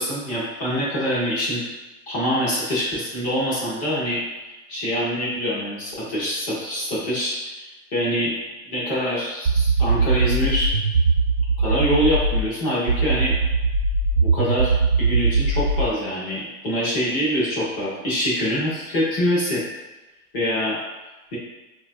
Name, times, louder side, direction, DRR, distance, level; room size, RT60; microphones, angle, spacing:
voice 1, 0.0-1.6 2.1-8.3 8.7-10.7 11.6-13.4 14.2-19.6 20.3-20.8 21.3-21.4, equal, 15° left, -7 dB, 0.3 m, -25 dB
sound 1, 9.5-12.5 12.9-15.9, right 4 dB, 65° right, 0.9 m, -20 dB
4.3 x 2.2 x 2.5 m, 1.1 s
hypercardioid pair, 140°, 45 cm